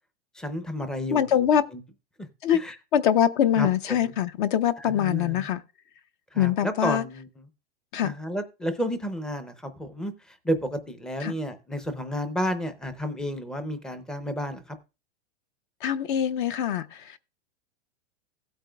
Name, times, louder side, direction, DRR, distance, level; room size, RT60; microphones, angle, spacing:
voice 1, 0.3-1.8 2.2-2.8 3.6-4.1 4.8-5.5 6.3-7.5 8.0-14.8, equal, ahead, 0.5 m, -32 dB
voice 2, 1.1-1.6 2.4-2.6 2.9-5.6 6.4-7.0 7.9-8.1 11.2-11.3 15.8-17.2, left 10 dB, 45° left, 0.6 m, -23 dB
16.0 x 8.8 x 2.3 m
supercardioid pair, 155°, 34 cm